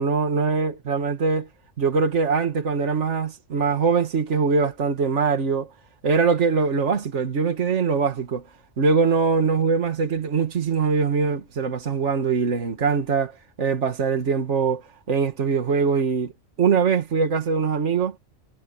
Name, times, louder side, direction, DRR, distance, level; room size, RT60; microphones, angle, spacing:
voice 1, 0.0-1.5 1.8-5.7 6.0-8.4 8.8-14.8 15.1-16.3 16.6-18.2, right 5 dB, 65° right, 1.9 m, -22 dB
omnidirectional pair, 1.3 m